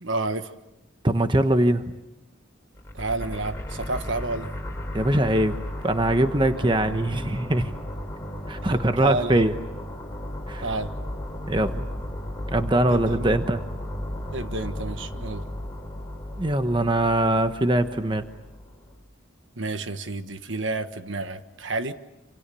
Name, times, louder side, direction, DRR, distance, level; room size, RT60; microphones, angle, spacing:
voice 1, 0.0-0.5 2.9-4.5 8.6-9.5 10.6-10.9 12.9-13.5 14.3-15.4 19.6-21.9, right 2 dB, 75° right, 9 dB, 1.5 m, -30 dB
voice 2, 1.0-1.9 4.9-5.6 5.8-7.8 8.5-9.5 10.5-10.7 11.5-11.8 12.5-13.6 16.4-18.2, right 1 dB, 25° right, 8 dB, 1.1 m, -22 dB
sound 1, 2.8-19.0, left 1 dB, 15° left, 3.9 m, -35 dB
27.5 x 27.5 x 7.0 m, 0.97 s
head